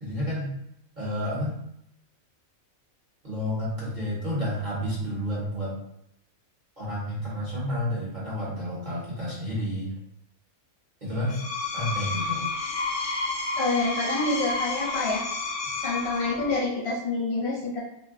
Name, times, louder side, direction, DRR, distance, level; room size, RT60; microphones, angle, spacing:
voice 1, 0.0-0.6 1.0-1.6 3.2-5.8 6.8-9.9 11.0-11.4 11.7-12.5, equal, 35° right, -7 dB, 1.1 m, -30 dB
Screech, 11.2-16.6, left 3 dB, 75° left, 0.4 m, -31 dB
voice 2, 13.6-15.2 15.8-17.8, left 2 dB, 55° left, -6 dB, 1.0 m, -27 dB
2.6 x 2.1 x 3.7 m, 0.75 s
omnidirectional pair, 1.4 m